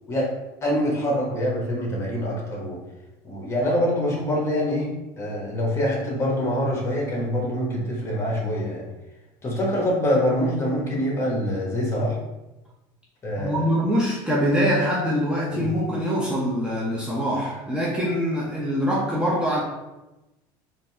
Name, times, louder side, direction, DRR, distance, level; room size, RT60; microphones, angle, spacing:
voice 1, 0.6-2.8 3.2-8.9 9.4-12.2 13.2-13.6 15.5-15.7, equal, 25° left, -2 dB, 1.3 m, -25 dB
voice 2, 13.4-19.6, equal, 10° right, -6 dB, 0.7 m, -24 dB
4.0 x 2.7 x 3.4 m, 1.0 s
supercardioid pair, 115°, 11 cm